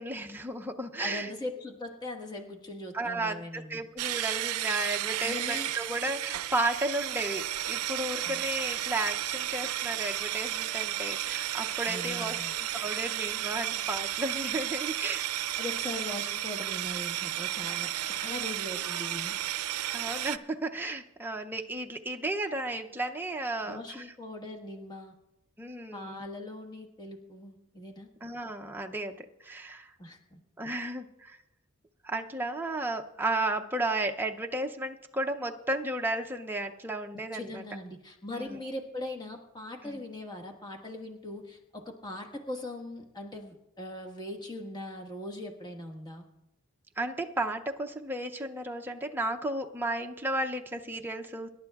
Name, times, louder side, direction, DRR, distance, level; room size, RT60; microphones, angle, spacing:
voice 1, 0.0-1.3 2.9-15.3 19.9-24.1 25.6-26.2 28.2-29.9 30.6-31.4 32.0-37.6 38.3-38.6 39.8-40.0 47.0-51.5, right 2 dB, 10° right, 3 dB, 0.5 m, -33 dB
voice 2, 1.0-3.8 5.2-5.7 8.2-8.4 11.8-12.5 15.6-19.4 23.7-25.1 25.9-28.1 30.0-30.4 37.3-46.3, left 1 dB, 20° left, 2 dB, 1.4 m, -40 dB
sound 1, 4.0-20.4, right 13 dB, 80° right, 0.4 m, -33 dB
26.0 x 11.5 x 2.3 m, 0.89 s
head